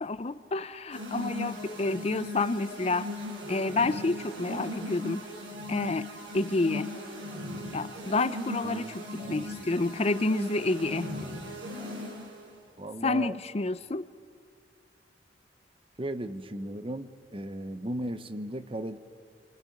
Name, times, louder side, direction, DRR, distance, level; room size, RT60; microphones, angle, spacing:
voice 1, 0.0-3.1 3.5-5.3 5.7-6.1 6.3-6.9 7.7-11.1 13.0-14.1, left 3 dB, 35° left, 14 dB, 0.6 m, -29 dB
sound 1, 0.9-12.5, left 1 dB, 80° right, 5.1 m, -38 dB
voice 2, 8.6-9.7 12.8-13.3 16.0-19.0, right 1 dB, 30° right, 11 dB, 0.9 m, -36 dB
29.0 x 24.0 x 5.3 m, 2.3 s
head